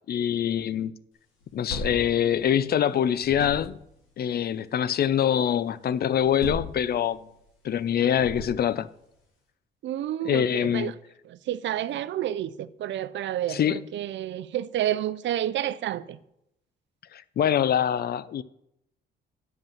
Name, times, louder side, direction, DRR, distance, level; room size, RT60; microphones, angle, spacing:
voice 1, 0.1-0.9 1.5-3.8 4.2-7.3 7.6-8.9 10.2-10.9 13.5-13.8 17.1-18.4, left 9 dB, 50° left, 0.5 m, -24 dB
sound 1, 1.4-2.9 3.2-3.9 6.1-7.3 8.1-8.9, left 1 dB, 90° left, 3.3 m, -38 dB
voice 2, 9.8-10.9 11.3-16.2, right 12 dB, 70° right, 0.6 m, -30 dB
9.2 x 5.4 x 7.1 m
cardioid pair, 90°, 20 cm